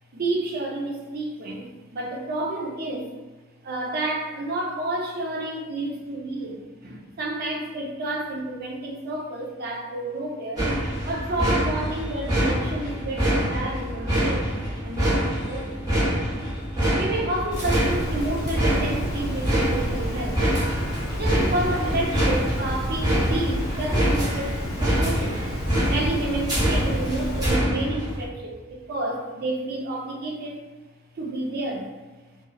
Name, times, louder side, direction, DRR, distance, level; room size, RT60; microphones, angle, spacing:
voice 1, 0.1-3.1 3.6-10.7 11.0-14.5 14.8-15.7 16.9-20.4 21.2-25.4 25.9-30.6 31.1-31.9, right 2 dB, 50° right, 0 dB, 0.4 m, -30 dB
sound 1, 10.6-28.3, equal, 20° right, 0.8 m, -25 dB
Water, 17.5-27.5, equal, 80° left, 0.6 m, -31 dB
2.8 x 2.0 x 2.2 m, 1.2 s
head